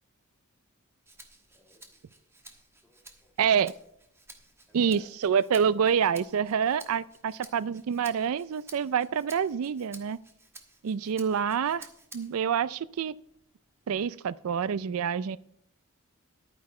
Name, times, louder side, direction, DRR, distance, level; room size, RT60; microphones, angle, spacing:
Rattle (instrument), 1.1-12.5 13.0-14.1, right 2 dB, 10° right, 1.2 m, -53 dB
voice 1, 1.5-2.2 2.8-3.8 4.7-5.1 11.0-11.3, left 1 dB, 5° left, 1.7 m, -61 dB
voice 2, 3.4-3.7 4.7-10.2 10.8-11.9 12.1-13.1 13.9-15.4, right 7 dB, 75° right, 0.4 m, -27 dB
12.0 x 9.5 x 4.3 m
head